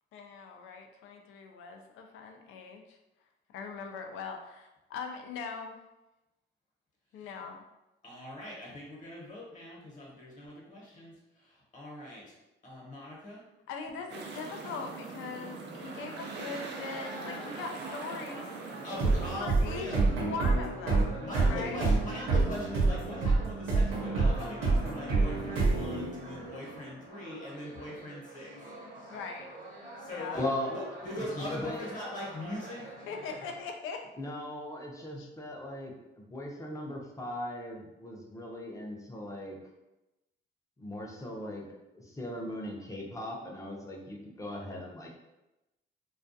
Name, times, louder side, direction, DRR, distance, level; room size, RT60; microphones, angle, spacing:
voice 1, 0.1-3.0 3.5-5.8 7.1-7.6 13.7-18.5 19.4-21.9 29.1-29.5 30.0-30.4 33.1-34.0 35.2-35.3, left 5 dB, 85° left, 4 dB, 0.4 m, -41 dB
voice 2, 8.0-12.3 12.6-13.4 13.9-14.0 18.8-20.0 21.2-28.5 30.0-30.4 30.7-32.9, left 1 dB, 40° left, -4 dB, 1.0 m, -41 dB
sound 1, 14.1-19.4, right 4 dB, 65° right, 0.4 m, -42 dB
sound 2, 15.8-33.6, right 1 dB, 40° right, 0.8 m, -47 dB
sound 3, 19.0-26.6, right 3 dB, 90° right, 0.9 m, -28 dB
voice 3, 30.3-30.7 31.1-31.9 34.2-39.6 40.8-45.1, left 1 dB, 15° left, -1 dB, 0.6 m, -39 dB
2.3 x 2.2 x 2.6 m, 0.97 s
cardioid pair, 90°, 20 cm